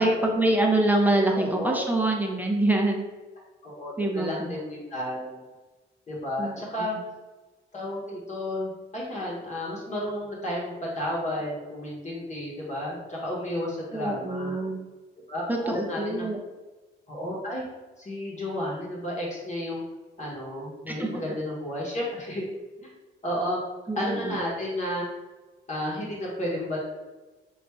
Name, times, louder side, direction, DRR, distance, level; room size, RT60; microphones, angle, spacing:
voice 1, 0.0-3.0 4.0-4.5 6.4-7.0 13.9-14.9 15.5-16.4 20.9-21.2 23.9-24.4, right 1 dB, 10° right, 0 dB, 0.5 m, -25 dB
voice 2, 1.3-1.8 3.6-5.4 6.1-6.9 7.7-14.6 15.3-16.3 17.1-17.6 18.0-19.8 20.2-22.5 22.8-22.9 23.2-23.6 24.0-25.0 25.7-26.8, left 1 dB, 35° left, -5 dB, 1.0 m, -32 dB
3.0 x 2.5 x 3.4 m, 1.2 s
cardioid pair, 90°, 20 cm